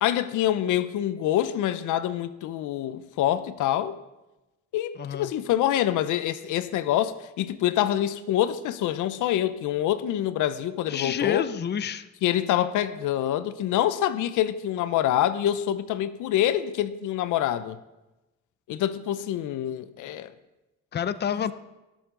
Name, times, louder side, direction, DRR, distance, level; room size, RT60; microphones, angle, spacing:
voice 1, 0.0-4.0 4.7-11.5 12.2-17.8 18.7-20.3, left 12 dB, 85° left, 0.7 m, -26 dB
voice 2, 5.0-5.3 10.9-12.1 20.9-21.5, left 8 dB, 35° left, 0.6 m, -28 dB
19.0 x 7.3 x 3.8 m
cardioid pair, 90°, 30 cm